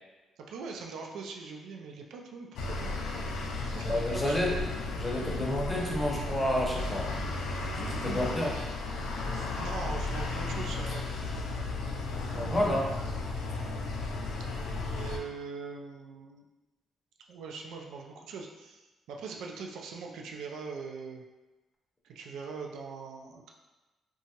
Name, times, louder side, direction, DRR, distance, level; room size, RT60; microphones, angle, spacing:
voice 1, 0.5-3.0 3.7-4.4 9.6-11.0 12.4-12.8 14.9-16.5 17.3-18.8 19.1-21.2 22.0-23.5, right 4 dB, 80° right, 1 dB, 0.3 m, -41 dB
sound 1, 2.6-15.2, left 3 dB, 85° left, 0.4 m, -34 dB
voice 2, 3.8-4.7 4.9-7.1 7.6-8.6 12.3-12.9, left 1 dB, 15° left, -2 dB, 0.6 m, -30 dB
2.9 x 2.2 x 2.8 m, 1.1 s
cardioid pair, 90°, 0 cm